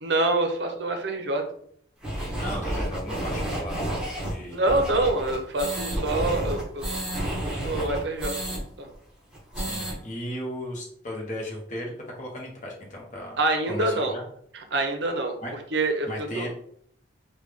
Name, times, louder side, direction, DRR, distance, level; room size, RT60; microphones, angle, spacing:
voice 1, 0.0-1.4 4.5-6.9 7.4-8.3 8.8-8.9 13.4-14.1 14.5-15.4 15.7-16.1 16.4-16.5, right 2 dB, 60° right, 4 dB, 0.5 m, -26 dB
sound 1, 2.0-8.6 8.9-9.0 9.3-9.9, right 1 dB, 5° right, 0.9 m, -30 dB
voice 2, 2.4-3.8 4.2-4.6 9.5-13.4 13.6-14.2 15.4-15.5 16.1-16.5, equal, 40° left, -1 dB, 0.8 m, -36 dB
3.3 x 2.2 x 3.4 m, 0.65 s
head